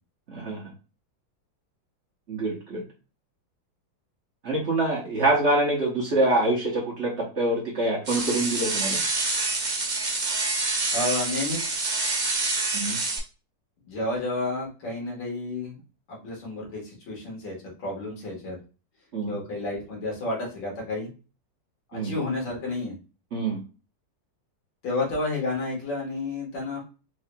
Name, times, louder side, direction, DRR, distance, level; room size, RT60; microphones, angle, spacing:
voice 1, 0.3-0.6 2.3-2.8 4.4-9.0 12.7-13.0 19.1-19.3 21.9-22.1 23.3-23.6, right 2 dB, 50° right, -3 dB, 0.9 m, -25 dB
sound 1, 8.1-13.2, right 3 dB, 85° right, 0.4 m, -27 dB
voice 2, 10.6-11.7 13.9-15.8 16.1-18.6 19.3-21.1 21.9-22.9 24.8-26.8, left 2 dB, 85° left, -3 dB, 2.2 m, -31 dB
4.6 x 3.0 x 2.2 m, 0.33 s
omnidirectional pair, 2.0 m